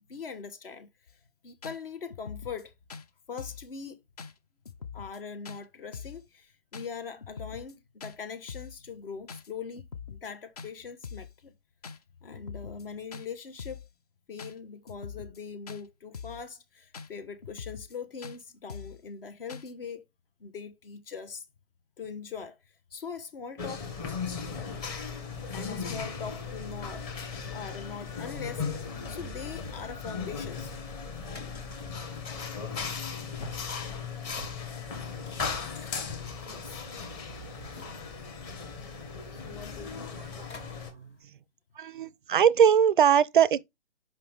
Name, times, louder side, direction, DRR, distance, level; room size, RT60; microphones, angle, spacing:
voice 1, 0.1-0.9 1.4-2.7 3.3-4.0 4.9-9.8 10.1-11.5 12.2-13.8 14.3-20.1 20.4-21.5 22.0-22.6 22.9-23.8 24.4-24.5 25.5-27.1 27.5-30.7 36.5-36.8 39.3-40.1, left 6 dB, 50° left, 1.0 m, -41 dB
sound 1, 1.1-1.2 1.6-1.8 2.1-2.6 2.9-3.0 3.4-3.7 4.2-4.3 4.7-5.2 5.4-5.6 5.9-6.2 6.7-6.9 7.2-7.7 8.0-8.2 8.5-8.8 9.3-9.5 9.8-10.3 10.6-10.7 11.0-11.3 11.8-12.0 12.3-12.8 13.1-13.3 13.6-13.9 14.4-14.5 14.9-15.4 15.7-15.8 16.1-16.5 16.9-17.1 17.4-18.0 18.2-18.4 18.7-19.0 19.5-19.7, left 6 dB, 35° left, 0.5 m, -43 dB
sound 2, 23.6-40.9, left 5 dB, 20° left, 0.9 m, -37 dB
sound 3, 30.8-41.2, left 1 dB, 75° left, 1.8 m, -52 dB
voice 2, 41.8-43.6, right 8 dB, 45° right, 0.4 m, -21 dB
5.6 x 5.2 x 3.4 m
figure-of-eight pair, 135°, 36 cm